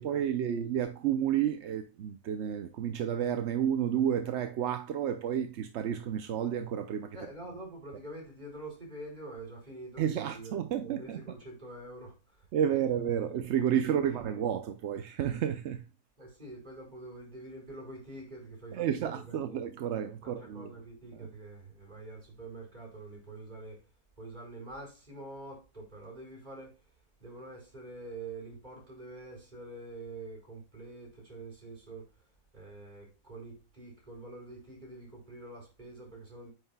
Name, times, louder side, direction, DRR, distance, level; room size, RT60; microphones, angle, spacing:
voice 1, 0.0-7.2 10.0-11.2 12.5-15.8 18.7-20.7 21.2-21.3, right 9 dB, 60° right, 0.8 m, -31 dB
voice 2, 7.1-10.5 10.8-12.8 13.3-13.4 13.9-14.4 16.2-19.6 20.2-23.8 24.2-26.8 27.2-32.1 32.5-36.5, right 2 dB, 30° right, 4.8 m, -46 dB
8.9 x 6.6 x 2.2 m
omnidirectional pair, 1.6 m